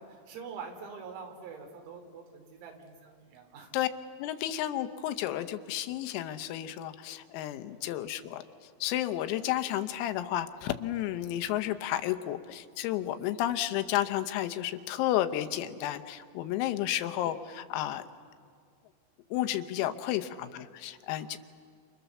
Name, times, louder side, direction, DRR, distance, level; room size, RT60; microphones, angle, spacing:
voice 1, 0.0-3.7 7.7-7.8 11.3-11.4 16.9-17.0 21.2-21.4, right 5 dB, 85° right, 3 dB, 5.7 m, -45 dB
voice 2, 4.2-8.4 8.8-18.0 19.3-21.4, left 13 dB, 85° left, 10 dB, 3.7 m, -32 dB
29.0 x 28.5 x 7.1 m, 2.1 s
omnidirectional pair, 6.0 m